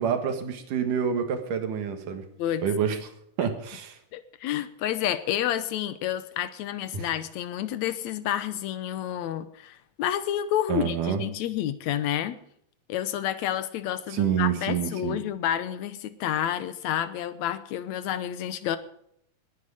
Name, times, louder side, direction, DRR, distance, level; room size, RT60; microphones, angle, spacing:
voice 1, 0.0-2.2 2.6-3.1 3.4-4.0 6.9-7.1 10.7-11.2 14.1-15.2, right 7 dB, 85° right, 6 dB, 3.3 m, -27 dB
voice 2, 4.1-12.4 12.9-18.8, left 11 dB, 70° left, 13 dB, 2.1 m, -29 dB
20.5 x 9.6 x 5.0 m, 0.70 s
omnidirectional pair, 3.6 m